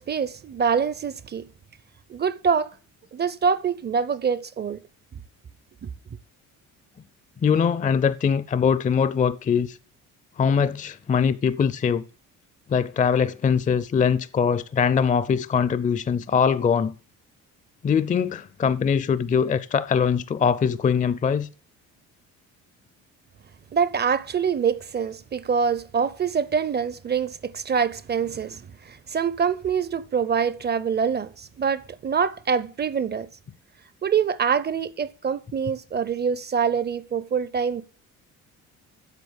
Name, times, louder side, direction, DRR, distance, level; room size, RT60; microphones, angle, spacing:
voice 1, 0.0-1.4 2.1-2.7 3.1-4.8 5.8-5.9 23.7-28.6 28.9-33.3 34.0-37.8, right 6 dB, 30° right, 0.6 m, -25 dB
voice 2, 7.4-9.8 10.4-12.0 12.7-16.9 17.8-21.5, left 6 dB, 25° left, 0.5 m, -22 dB
8.2 x 6.8 x 7.0 m
cardioid pair, 90°, 33 cm